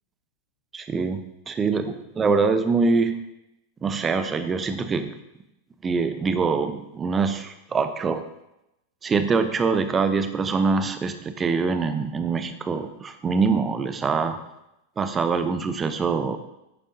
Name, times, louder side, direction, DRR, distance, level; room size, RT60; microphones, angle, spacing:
voice 1, 0.7-1.9 2.2-3.2 3.8-5.1 5.8-8.2 9.0-14.4 15.0-16.4, right 4 dB, 20° right, 10 dB, 0.7 m, -24 dB
10.0 x 8.9 x 2.7 m, 0.88 s
figure-of-eight pair, 90°, 0 cm